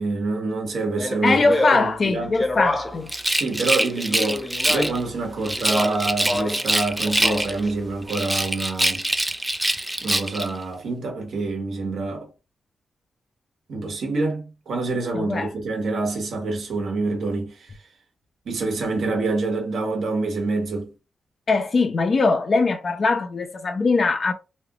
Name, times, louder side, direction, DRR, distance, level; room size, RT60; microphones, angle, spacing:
voice 1, 0.0-2.4 3.3-9.1 10.0-12.3 13.7-17.9 18.4-20.9, right 3 dB, 75° right, 1.2 m, -26 dB
Speech, 0.9-3.1 3.9-5.1 5.6-6.7 7.0-7.7, left 1 dB, 20° left, 0.9 m, -27 dB
voice 2, 1.2-3.1 15.1-15.5 21.5-24.3, left 3 dB, 45° left, 0.6 m, -21 dB
Rattle, 3.1-5.0 5.4-7.7 8.1-10.5, right 1 dB, 10° right, 0.4 m, -24 dB
3.1 x 2.4 x 2.9 m
cardioid pair, 90°, 0 cm